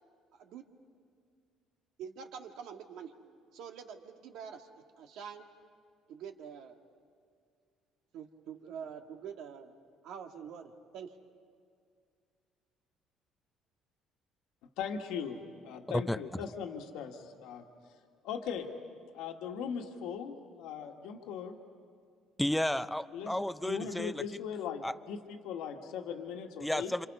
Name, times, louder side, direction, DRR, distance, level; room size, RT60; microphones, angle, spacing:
voice 1, 0.3-0.7 2.0-3.1 3.5-4.7 5.0-5.5 6.1-6.8 8.1-9.7 10.0-11.1, right 7 dB, 70° right, 5 dB, 1.8 m, -45 dB
voice 2, 14.8-17.6 18.2-18.7 19.1-21.6 23.1-23.3 23.6-26.9, left 7 dB, 85° left, 3 dB, 1.8 m, -39 dB
voice 3, 15.9-16.2 22.4-24.2 24.8-24.9 26.6-27.1, left 1 dB, 5° left, 14 dB, 0.5 m, -32 dB
28.0 x 26.5 x 5.5 m, 2.2 s
cardioid pair, 130°, 0 cm